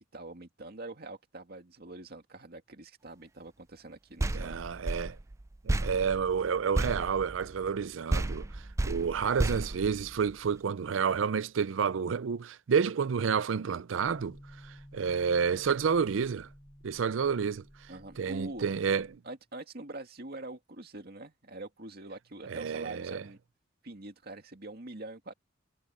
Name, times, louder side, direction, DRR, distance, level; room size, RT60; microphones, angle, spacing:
voice 1, 0.1-4.6 8.8-9.1 17.9-18.6 19.2-23.4 23.8-25.3, right 2 dB, 55° right, 2.3 m, -44 dB
sound 1, 4.2-7.8 8.1-10.6, right 2 dB, 15° right, 0.4 m, -33 dB
voice 2, 4.3-5.2 5.6-14.4 14.6-16.5 16.8-17.6 18.2-19.2 22.5-23.2, right 6 dB, 90° right, 0.5 m, -30 dB
sound 2, 14.0-19.2, equal, 15° left, 7.0 m, -53 dB
head